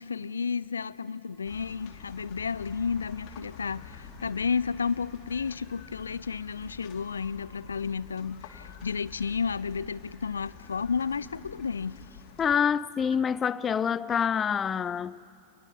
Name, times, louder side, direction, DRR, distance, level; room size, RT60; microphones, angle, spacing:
voice 1, 0.0-12.0, left 5 dB, 75° left, 0.5 m, -32 dB
sound 1, 1.4-12.6, left 7 dB, 45° left, 2.8 m, -48 dB
voice 2, 12.4-15.2, left 7 dB, 20° left, 0.5 m, -26 dB
28.5 x 20.5 x 7.4 m
figure-of-eight pair, 90°, 0 cm